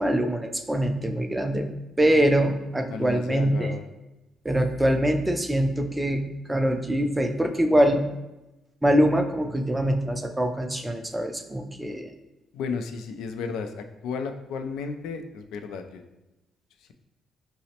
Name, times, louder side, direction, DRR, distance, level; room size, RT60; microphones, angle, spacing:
voice 1, 0.0-1.7 2.0-3.8 4.4-8.1 8.8-12.1, right 1 dB, 15° right, 5 dB, 0.4 m, -23 dB
voice 2, 2.9-3.8 12.5-16.0, left 5 dB, 85° left, 6 dB, 0.3 m, -33 dB
4.9 x 2.0 x 2.8 m, 1.0 s
cardioid pair, 90°, 0 cm